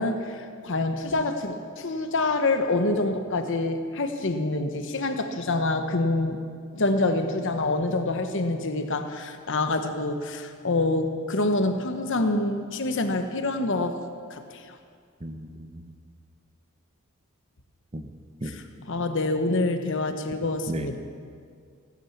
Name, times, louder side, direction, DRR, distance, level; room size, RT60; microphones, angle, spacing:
voice 1, 0.0-6.4 6.7-14.8 18.4-21.0, left 2 dB, 60° left, 7 dB, 1.0 m, -26 dB
voice 2, 15.2-15.9 17.9-18.0 18.4-18.6 20.7-21.0, right 1 dB, 30° right, 7 dB, 0.8 m, -34 dB
15.5 x 9.0 x 7.3 m, 2.2 s
head